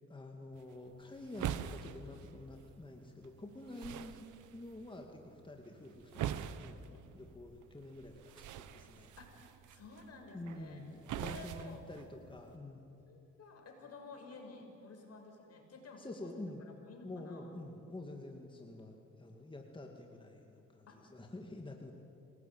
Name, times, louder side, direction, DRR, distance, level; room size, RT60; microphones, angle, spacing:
voice 1, 0.1-4.3 4.5-9.1 10.3-13.0 16.0-16.6 17.0-21.9, left 2 dB, 15° left, 2 dB, 2.4 m, -48 dB
sound 1, 0.5-12.6, right 10 dB, 80° right, 1.1 m, -45 dB
voice 2, 9.2-10.8 11.2-11.8 13.1-16.3 16.9-17.5 20.9-21.1, left 3 dB, 55° left, 3 dB, 6.3 m, -52 dB
27.5 x 19.0 x 9.1 m, 2.7 s
cardioid pair, 90°, 30 cm